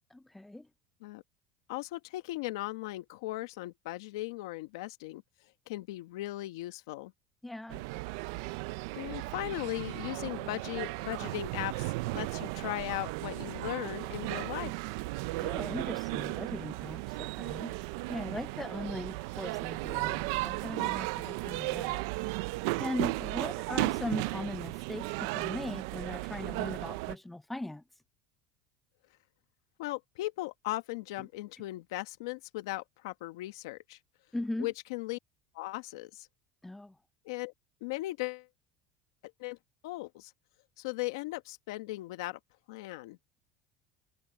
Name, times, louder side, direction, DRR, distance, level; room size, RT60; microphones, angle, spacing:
voice 1, 0.1-0.7 7.4-7.8 15.4-17.7 18.1-22.0 22.8-27.8 34.3-34.7 36.6-36.9, left 1 dB, 5° left, 0.5 m, -39 dB
voice 2, 1.7-5.2 5.7-7.1 8.9-14.7 29.8-34.0 34.6-35.2 35.5-36.3 37.2-37.5 37.8-38.5 39.2-39.6 39.8-40.3 40.8-42.4 42.7-43.2, left 18 dB, 90° left, 1.4 m, -38 dB
sound 1, 7.7-27.2, right 23 dB, 80° right, 0.4 m, -35 dB
supercardioid pair, 120°, 2 cm